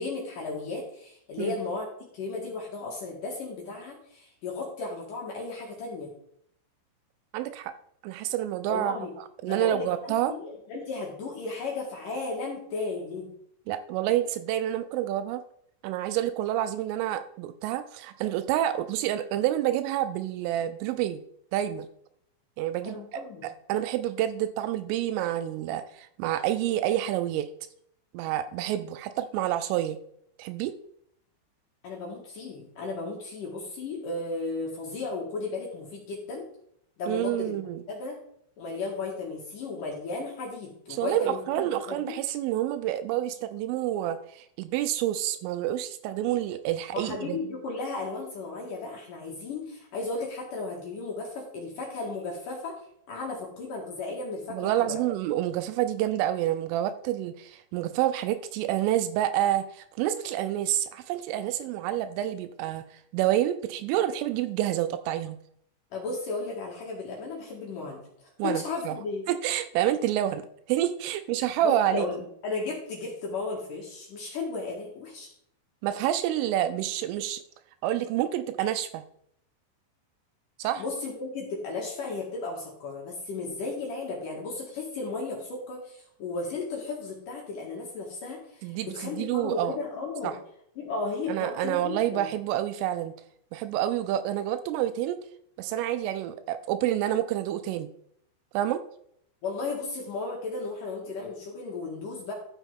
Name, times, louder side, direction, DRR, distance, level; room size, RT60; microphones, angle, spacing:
voice 1, 0.0-1.9 2.1-6.1 8.7-9.1 9.5-13.3 22.8-23.4 31.8-36.4 37.0-37.6 37.9-38.2 38.6-42.1 46.9-52.7 53.1-55.0 65.9-69.3 71.6-75.3 80.8-90.3 90.8-92.3 99.4-102.3, left 3 dB, 60° left, -2 dB, 2.3 m, -35 dB
voice 2, 7.3-7.7 8.0-9.0 9.4-10.3 13.7-15.4 15.8-21.2 21.5-21.9 22.6-27.5 28.1-30.0 30.4-30.7 37.1-37.8 40.9-47.4 54.5-62.8 63.1-65.4 68.4-69.0 69.3-72.0 75.8-77.4 77.8-79.0 80.6-80.8 88.6-89.8 90.2-90.3 91.3-93.1 93.5-95.2 95.6-97.9 98.5-98.8, right 12 dB, 85° right, 11 dB, 3.0 m, -28 dB
12.5 x 7.2 x 3.6 m, 0.70 s
omnidirectional pair, 5.9 m